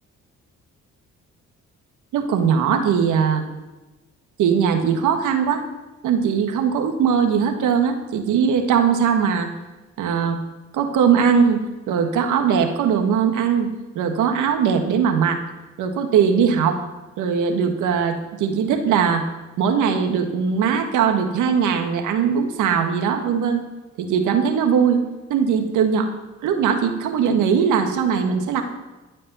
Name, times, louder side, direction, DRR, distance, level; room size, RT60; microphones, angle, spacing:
voice 1, 2.1-3.4 4.4-5.6 6.0-9.5 10.0-10.4 10.7-13.7 14.0-15.4 15.8-16.8 17.2-19.2 19.6-23.6 24.0-25.0 25.3-26.1 26.4-28.6, right 7 dB, 85° right, 6 dB, 1.7 m, -20 dB
14.0 x 5.5 x 9.4 m, 1.1 s
cardioid pair, 90°, 30 cm